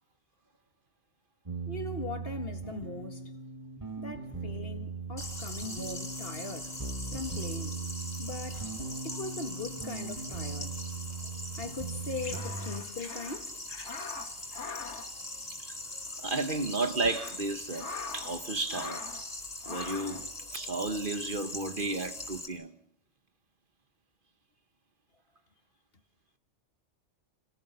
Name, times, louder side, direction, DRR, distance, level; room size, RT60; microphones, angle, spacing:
sound 1, 1.4-12.8, right 4 dB, 30° right, 2.2 m, -39 dB
voice 1, 1.7-3.2 4.0-6.7 7.1-7.8 8.2-8.7 9.0-10.7 11.5-13.5, left 3 dB, 55° left, 2.2 m, -40 dB
sound 2, 5.2-22.5, left 1 dB, 35° left, 4.2 m, -42 dB
sound 3, 11.9-16.3 16.8-18.4 18.7-19.3 19.6-20.3, left 5 dB, 75° left, 1.5 m, -43 dB
voice 2, 16.2-19.0 19.7-22.7, right 2 dB, 50° right, 1.3 m, -33 dB
30.0 x 18.0 x 6.8 m
omnidirectional pair, 1.2 m